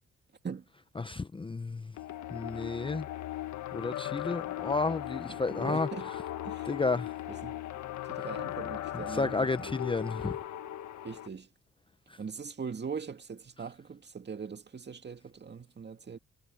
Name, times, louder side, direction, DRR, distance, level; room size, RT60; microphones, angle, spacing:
voice 1, 1.0-1.9 2.3-3.1 3.7-6.2 6.6-7.1 9.1-10.4, left 3 dB, 15° left, 0.7 m, -32 dB
sound 1, 2.0-11.3, left 13 dB, 70° left, 1.5 m, -38 dB
voice 2, 5.3-6.1 6.4-6.7 7.3-7.6 8.0-9.7 11.0-11.5 12.2-16.2, right 6 dB, 35° right, 2.3 m, -41 dB
cardioid pair, 90°, 30 cm